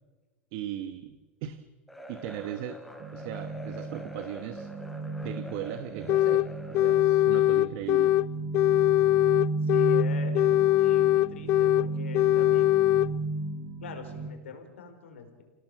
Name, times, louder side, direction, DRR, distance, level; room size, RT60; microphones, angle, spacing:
voice 1, 0.5-1.7 2.1-2.8 3.1-4.7 5.2-8.1, right 11 dB, 55° right, 10 dB, 1.3 m, -38 dB
sound 1, 1.9-7.3, equal, ahead, 4.2 m, -45 dB
sound 2, 3.0-14.3, right 2 dB, 40° right, 1.7 m, -34 dB
sound 3, 6.1-6.5 6.7-8.3 8.5-10.1 10.3-11.9 12.1-13.1, left 15 dB, 45° left, 0.6 m, -22 dB
voice 2, 9.6-12.9 13.3-13.4 13.8-15.4, left 5 dB, 80° left, 6 dB, 4.7 m, -43 dB
28.0 x 17.5 x 7.8 m, 1.3 s
hypercardioid pair, 95°, 7 cm